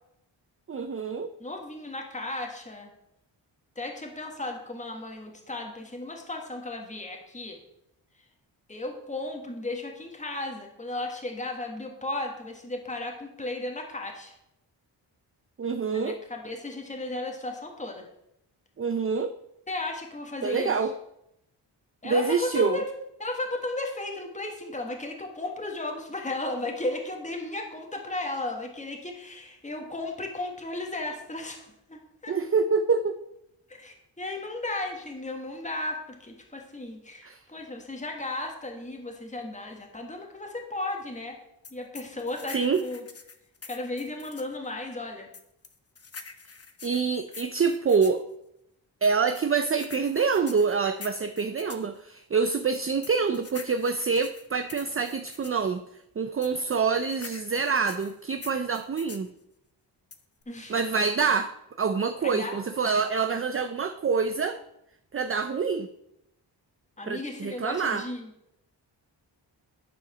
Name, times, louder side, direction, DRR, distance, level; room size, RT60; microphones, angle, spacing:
voice 1, 0.7-1.3 15.6-16.2 18.8-19.3 20.4-20.9 22.0-22.8 32.3-33.2 37.2-37.4 42.5-42.8 46.8-48.2 49.0-55.8 56.2-59.3 60.7-64.6 65.1-65.9 67.1-68.0, right 5 dB, 30° right, 8 dB, 0.6 m, -26 dB
voice 2, 1.4-2.9 3.7-7.6 8.7-14.4 15.9-18.1 19.7-20.7 22.0-22.9 23.2-32.3 33.7-41.4 41.7-43.0 43.7-45.3 60.5-60.7 62.2-62.6 67.0-68.3, left 2 dB, 15° left, 2 dB, 1.7 m, -35 dB
sound 1, 41.6-44.5 45.3-48.2 49.0-51.9 52.7-55.6 56.4-59.3 60.1-60.4, left 4 dB, 30° left, 1.0 m, -45 dB
10.5 x 4.8 x 6.1 m, 0.81 s
cardioid pair, 75°, 45 cm